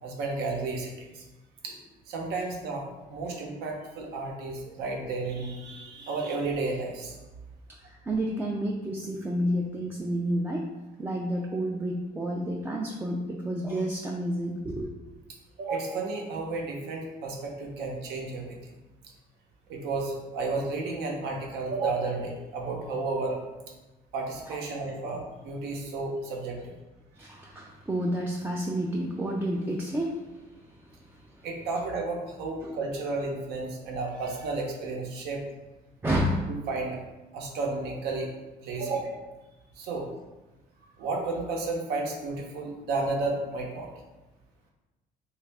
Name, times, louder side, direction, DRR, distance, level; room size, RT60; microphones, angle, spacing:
voice 1, 0.0-1.2 1.6-7.2 15.6-18.6 19.7-23.4 24.1-26.7 31.4-35.4 36.5-37.0 37.3-38.3 38.6-39.2 39.8-40.1 41.0-43.9, right 3 dB, 80° right, 0 dB, 0.7 m, -32 dB
voice 2, 8.0-10.6 11.0-14.9 24.5-24.6 27.2-30.2 36.0-36.5 38.8-38.9, right 1 dB, 10° right, -2 dB, 0.3 m, -30 dB
3.1 x 2.4 x 3.3 m, 1.1 s
cardioid pair, 110°, 17 cm